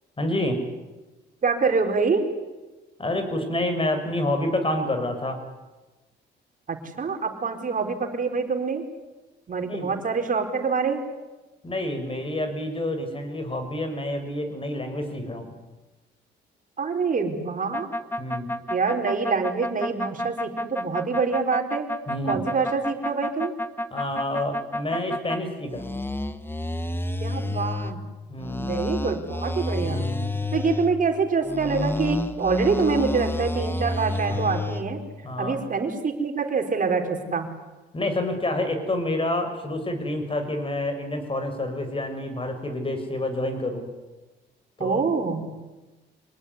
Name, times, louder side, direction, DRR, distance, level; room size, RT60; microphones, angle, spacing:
voice 1, 0.2-0.6 3.0-5.4 9.7-9.9 11.6-15.5 18.2-18.5 22.1-22.4 23.9-25.9 28.3-28.7 29.8-30.5 34.3-34.4 35.2-35.6 37.9-43.9 44.8-45.0, left 1 dB, 25° left, 7 dB, 6.6 m, -28 dB
voice 2, 1.4-2.3 6.7-8.8 9.5-11.0 16.8-17.9 18.7-21.9 22.3-23.5 27.2-28.0 28.6-30.0 30.5-35.0 35.4-37.5 44.8-45.5, right 4 dB, 40° right, 4 dB, 4.8 m, -25 dB
sound 1, 17.7-25.4 25.7-27.9 28.4-30.9 31.4-34.8, left 1 dB, 10° left, 1.5 m, -29 dB
26.0 x 19.5 x 9.9 m, 1.1 s
cardioid pair, 90°, 20 cm